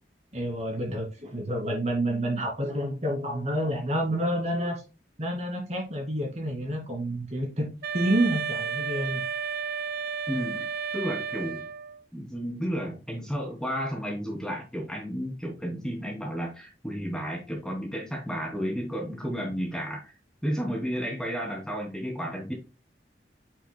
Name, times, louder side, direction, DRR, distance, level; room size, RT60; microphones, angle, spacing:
voice 1, 0.3-4.8 5.2-7.7 7.9-9.2, right 1 dB, 40° right, 1 dB, 2.4 m, -29 dB
Wind instrument woodwind instrument, 7.8-12.0, right 6 dB, 55° right, 0.6 m, -32 dB
voice 2, 10.3-10.7 10.9-11.7 12.1-20.1 20.4-22.5, equal, 5° left, -1 dB, 2.7 m, -32 dB
8.6 x 5.7 x 2.2 m, 0.30 s
head